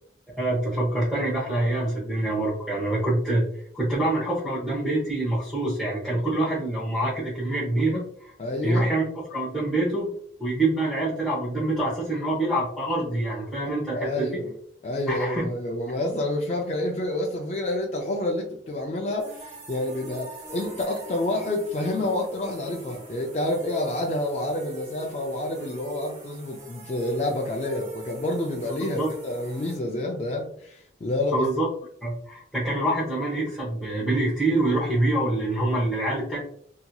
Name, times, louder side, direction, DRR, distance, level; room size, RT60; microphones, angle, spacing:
voice 1, 0.4-3.4 3.7-8.3 8.6-10.1 10.4-14.3 15.1-15.5 28.6-29.1 31.3-31.7 32.0-36.4, right 1 dB, 5° right, -10 dB, 0.8 m, -26 dB
voice 2, 8.4-9.0 13.9-14.5 14.8-31.5, left 1 dB, 35° left, 0 dB, 0.3 m, -28 dB
sound 1, 19.2-29.8, equal, 35° right, 0.7 m, -43 dB
2.8 x 2.7 x 2.2 m, 0.62 s
head